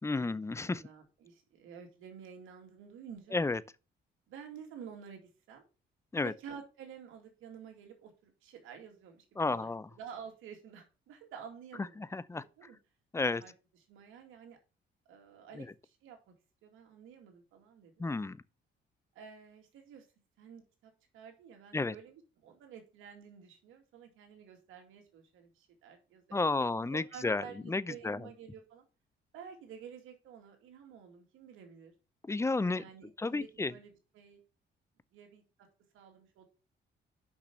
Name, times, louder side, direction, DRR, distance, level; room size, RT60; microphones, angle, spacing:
voice 1, 0.0-0.8 3.3-3.6 6.1-6.3 9.4-9.8 12.0-12.4 13.1-13.4 15.5-15.7 18.0-18.4 21.7-21.9 26.3-28.3 32.2-32.8 33.2-33.7, left 3 dB, 15° left, 0.6 m, -32 dB
voice 2, 0.6-3.4 4.3-5.7 6.2-12.8 13.4-13.5 13.9-14.6 15.1-16.3 16.6-18.0 19.1-20.1 20.4-28.8 29.3-31.9 32.7-34.4 35.1-35.4 35.9-36.4, right 7 dB, 90° right, 2.5 m, -51 dB
6.1 x 5.9 x 6.9 m
cardioid pair, 90°, 20 cm